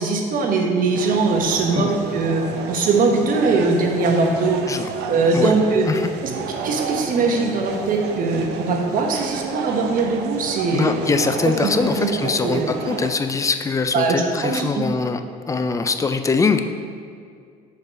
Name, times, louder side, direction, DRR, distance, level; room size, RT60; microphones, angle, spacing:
voice 1, 0.0-2.4 2.7-4.6 5.1-5.9 6.2-6.3 6.6-10.9 11.6-12.1 12.4-12.7 13.9-14.8, right 3 dB, 55° right, 2 dB, 1.0 m, -21 dB
sound 1, 0.9-13.1, right 5 dB, 80° right, 0.6 m, -31 dB
voice 2, 10.7-15.2 15.5-16.6, left 4 dB, 20° left, 7 dB, 0.4 m, -22 dB
5.3 x 4.0 x 5.6 m, 2.2 s
cardioid pair, 110°, 17 cm